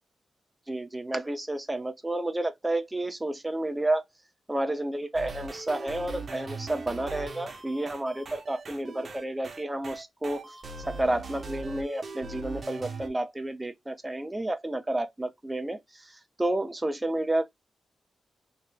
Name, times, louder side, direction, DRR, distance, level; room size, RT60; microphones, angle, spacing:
voice 1, 0.7-4.0 4.5-10.6 10.9-17.5, right 1 dB, 10° right, 0.4 m, -31 dB
sound 1, 5.1-13.1, right 3 dB, 35° right, 0.8 m, -40 dB
3.3 x 2.8 x 3.2 m
wide cardioid pair, 175°, 0 cm